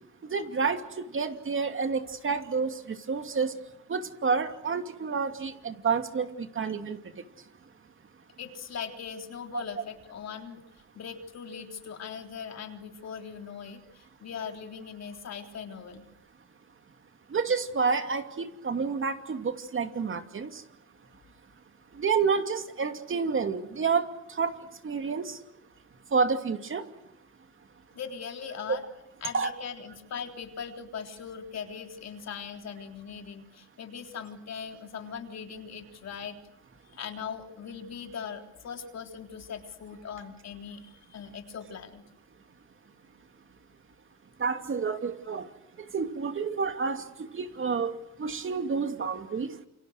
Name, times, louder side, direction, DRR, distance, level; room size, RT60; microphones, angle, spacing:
voice 1, 0.2-3.5 3.9-7.2 17.3-20.6 21.9-24.6 24.8-25.4 26.1-26.8 28.7-28.8 29.3-29.5 44.4-45.5 45.8-49.6, right 5 dB, 45° right, 7 dB, 2.7 m, -29 dB
voice 2, 8.4-10.6 11.0-16.1 27.9-28.8 29.2-36.4 36.9-42.0, left 7 dB, 60° left, 4 dB, 3.7 m, -40 dB
29.0 x 25.0 x 6.7 m, 0.84 s
cardioid pair, 90°, 30 cm